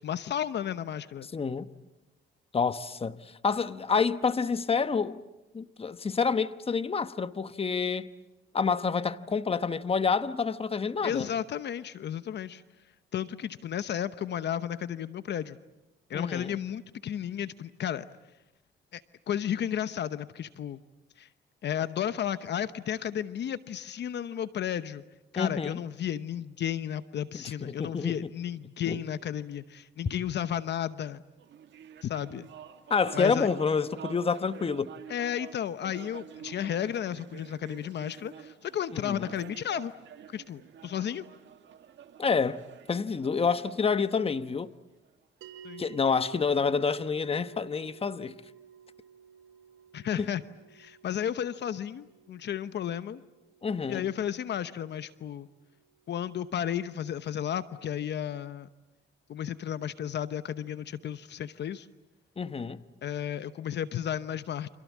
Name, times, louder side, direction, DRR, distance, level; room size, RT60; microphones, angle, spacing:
voice 1, 0.0-1.3 11.0-12.6 13.1-15.6 16.1-18.0 18.9-20.8 21.2-21.3 21.6-25.0 25.3-31.2 32.0-32.5 33.1-33.5 35.1-39.9 40.3-41.2 45.6-45.8 49.9-50.4 50.7-53.2 53.9-55.5 56.1-58.7 59.3-61.9 63.0-64.7, left 9 dB, 60° left, 0.9 m, -33 dB
voice 2, 1.3-1.7 2.5-5.2 5.5-8.1 8.5-11.3 16.1-16.5 25.4-25.8 27.3-28.1 28.9-29.0 32.9-34.9 38.9-39.3 42.2-42.6 42.9-44.7 45.8-48.4 50.2-50.3 53.6-54.1 62.4-62.8, left 5 dB, 30° left, 1.1 m, -28 dB
sound 1, 31.4-45.1, right 8 dB, 65° right, 1.8 m, -48 dB
sound 2, 45.4-56.0, right 8 dB, 85° right, 4.1 m, -53 dB
30.0 x 26.5 x 7.3 m
cardioid pair, 90°, 20 cm